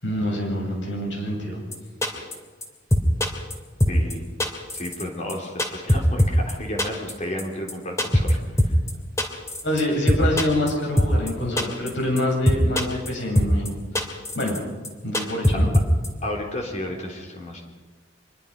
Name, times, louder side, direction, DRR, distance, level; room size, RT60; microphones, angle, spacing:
voice 1, 0.0-1.6 2.1-2.3 9.6-13.8 14.4-14.6 15.0-15.7, left 1 dB, 70° left, 0 dB, 7.9 m, -26 dB
sound 1, 1.7-1.8 2.0-2.3 2.6-2.7 2.9-3.5 3.8-4.1 4.4-5.0 5.3-6.5 6.8-7.1 7.4-7.5 7.7-7.8 8.0-8.3 8.6-8.9 9.2-9.8 10.1-10.7 11.0-11.3 11.6-11.9 12.2-12.3 12.5-13.1 13.3-13.7 13.9-14.6 14.8-14.9 15.1-16.1, left 1 dB, 15° left, 2.7 m, -21 dB
voice 2, 3.9-4.2 4.7-8.8 16.2-17.6, left 1 dB, 35° left, 1 dB, 3.6 m, -32 dB
25.5 x 22.5 x 5.4 m, 1.4 s
head